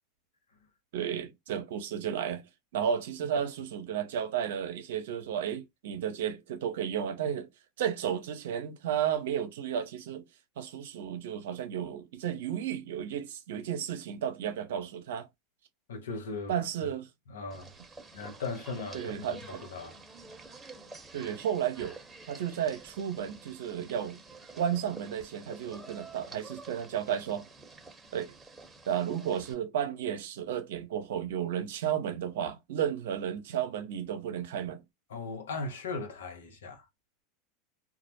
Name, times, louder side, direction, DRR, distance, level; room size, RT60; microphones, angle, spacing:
voice 1, 0.9-2.4 2.7-7.5 7.8-10.2 10.6-15.3 16.5-17.1 18.9-19.6 21.1-22.0 22.3-24.2 24.5-27.5 28.1-28.3 28.9-34.8, right 9 dB, 70° right, 0.6 m, -33 dB
voice 2, 15.9-16.6 16.8-16.9 17.3-17.7 18.1-20.0 35.1-36.9, left 3 dB, 80° left, 0.7 m, -38 dB
sound 1, 17.5-29.5, right 3 dB, 15° right, 0.9 m, -49 dB
2.2 x 2.0 x 2.9 m
hypercardioid pair, 95°, 0 cm